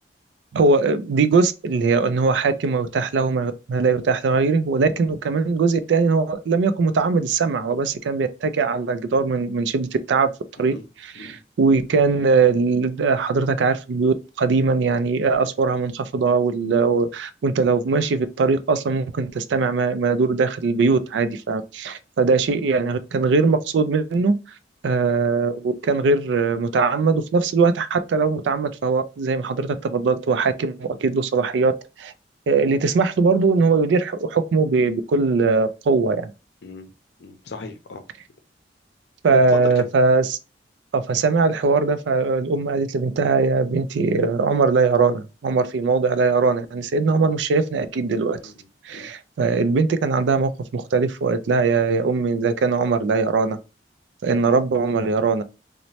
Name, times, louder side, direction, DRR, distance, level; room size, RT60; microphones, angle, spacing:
voice 1, 0.5-10.3 10.6-24.4 24.8-31.7 32.0-32.1 32.5-36.3 39.2-40.4 40.9-48.4 48.8-53.6 54.2-55.4, right 4 dB, 80° right, 0.4 m, -20 dB
voice 2, 36.6-36.9 37.2-38.0 39.3-39.4 39.8-39.9 48.4-48.5 48.9-49.1, left 3 dB, 70° left, 0.5 m, -37 dB
3.0 x 2.1 x 2.7 m
head